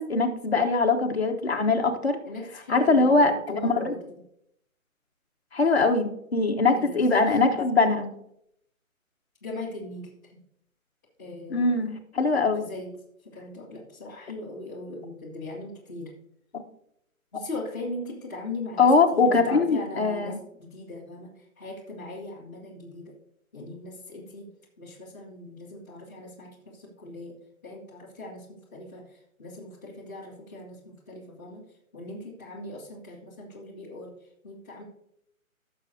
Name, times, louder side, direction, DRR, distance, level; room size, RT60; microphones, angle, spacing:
voice 1, 0.0-2.2 2.7-3.9 5.5-8.1 11.5-12.7 18.8-20.4, left 3 dB, 50° left, 3 dB, 1.2 m, -22 dB
voice 2, 2.2-4.2 6.7-7.5 9.4-10.4 11.2-11.9 12.6-12.9 13.2-16.1 17.3-23.1 23.5-24.5 24.8-31.6 31.9-34.8, left 2 dB, 15° left, -10 dB, 1.3 m, -40 dB
16.0 x 6.6 x 2.7 m, 0.74 s
hypercardioid pair, 175°, 42 cm